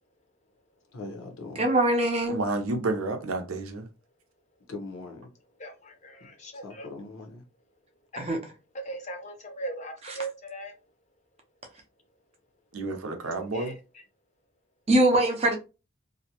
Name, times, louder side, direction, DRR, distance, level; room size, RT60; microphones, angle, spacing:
voice 1, 0.9-1.7 4.6-5.3 6.2-7.4, left 2 dB, 80° left, 0.7 m, -41 dB
voice 2, 1.6-2.4 8.2-8.4 10.0-10.2 14.9-15.6, right 1 dB, 30° right, 0.5 m, -22 dB
voice 3, 2.3-3.9 12.7-13.8, right 2 dB, 80° right, 0.6 m, -30 dB
voice 4, 5.6-6.9 8.9-10.7 13.5-13.7, right 2 dB, 30° left, 0.5 m, -38 dB
2.5 x 2.0 x 2.8 m
head